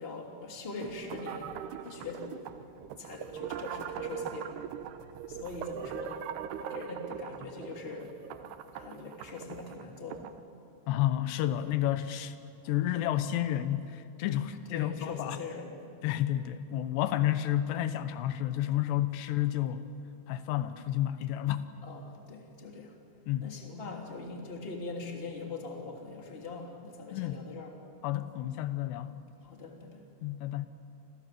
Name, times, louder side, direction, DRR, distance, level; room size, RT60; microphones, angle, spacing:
voice 1, 0.0-2.5 3.0-4.5 5.3-6.3 6.5-8.1 8.7-10.3 14.7-15.9 21.8-22.9 23.4-27.8 29.0-29.1 29.4-30.0, left 3 dB, 15° left, 2 dB, 2.5 m, -42 dB
sound 1, 0.8-10.4, right 9 dB, 80° right, 3.1 m, -41 dB
voice 2, 10.9-12.3 12.7-15.4 16.0-19.8 20.3-21.7 23.3-23.5 27.1-27.4 28.0-29.1 30.2-30.7, left 12 dB, 85° left, 11 dB, 3.2 m, -30 dB
29.0 x 26.5 x 7.7 m, 2.6 s
omnidirectional pair, 4.8 m